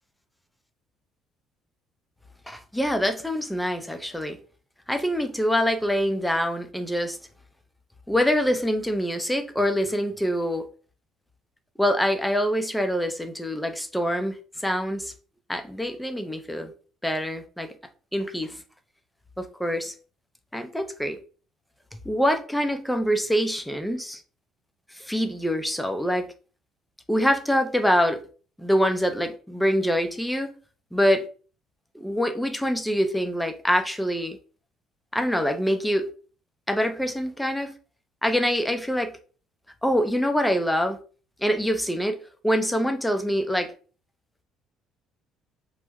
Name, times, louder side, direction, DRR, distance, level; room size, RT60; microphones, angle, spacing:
voice 1, 2.5-4.4 4.9-7.2 8.1-10.6 11.8-14.4 14.6-15.1 15.5-16.7 17.0-17.7 18.1-18.6 19.4-19.9 20.5-21.2 22.0-24.2 24.9-26.3 27.1-28.2 28.6-30.5 30.9-31.3 31.9-34.4 35.1-36.1 36.7-37.7 38.2-39.1 39.8-41.0 41.4-42.2 42.4-43.7, equal, 5° left, 0.6 m, -25 dB
2.9 x 2.1 x 3.4 m
supercardioid pair, 90°, 0 cm